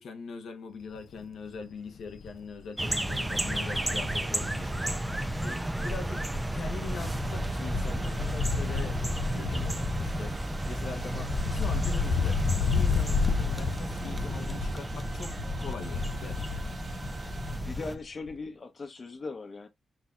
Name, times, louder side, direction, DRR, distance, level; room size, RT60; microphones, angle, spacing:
voice 1, 0.0-9.0 9.3-12.4 12.7-16.6, left 5 dB, 85° left, 0.9 m, -42 dB
Wind, 1.0-1.2 1.6-1.7 2.0-5.5 5.8-18.0 18.3-18.4, left 5 dB, 65° left, 0.4 m, -32 dB
sound 1, 2.8-18.0, right 1 dB, 10° right, 0.4 m, -33 dB
sound 2, 7.0-17.6, right 4 dB, 65° right, 1.2 m, -47 dB
voice 2, 17.2-19.7, left 3 dB, 35° left, 0.8 m, -40 dB
5.6 x 2.7 x 2.3 m
wide cardioid pair, 150°, 0 cm